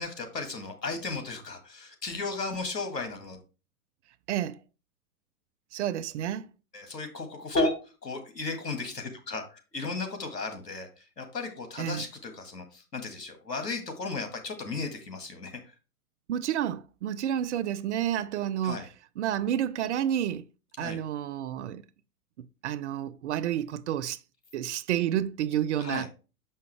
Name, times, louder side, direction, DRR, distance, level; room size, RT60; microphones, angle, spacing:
voice 1, 0.0-3.4 6.7-15.6 18.6-18.9 20.8-21.0 25.8-26.1, left 3 dB, 85° left, 1.8 m, -34 dB
voice 2, 4.3-4.6 5.7-6.5 11.8-12.0 16.3-18.9 19.2-20.4 20.8-21.8 22.4-24.2 24.5-26.1, right 10 dB, 50° right, 0.5 m, -30 dB
6.7 x 5.5 x 3.3 m
figure-of-eight pair, 110°, 48 cm